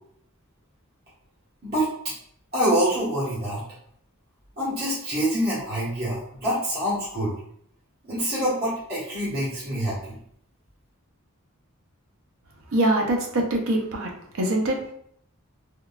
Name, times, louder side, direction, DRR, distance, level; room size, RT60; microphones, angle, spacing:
voice 1, 2.5-3.6 4.6-7.3 8.0-10.2, equal, 45° right, -10 dB, 1.2 m, -26 dB
voice 2, 12.7-14.1 14.4-14.9, right 1 dB, 70° right, 1 dB, 0.6 m, -23 dB
3.6 x 2.3 x 2.3 m, 0.67 s
head